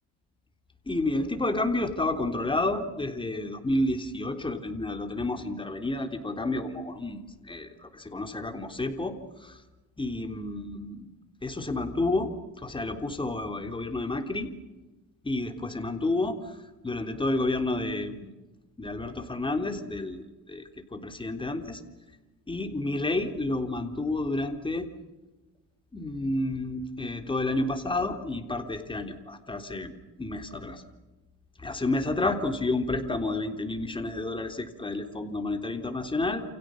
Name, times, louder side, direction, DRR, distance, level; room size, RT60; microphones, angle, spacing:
voice 1, 0.9-7.2 7.5-9.6 10.0-11.1 11.4-12.3 12.6-14.5 15.2-16.6 16.8-18.3 18.8-21.8 22.5-24.9 25.9-30.8 31.6-36.4, left 2 dB, 15° left, 5 dB, 3.5 m, -30 dB
29.5 x 28.5 x 6.5 m, 1.1 s
cardioid pair, 100°, 38 cm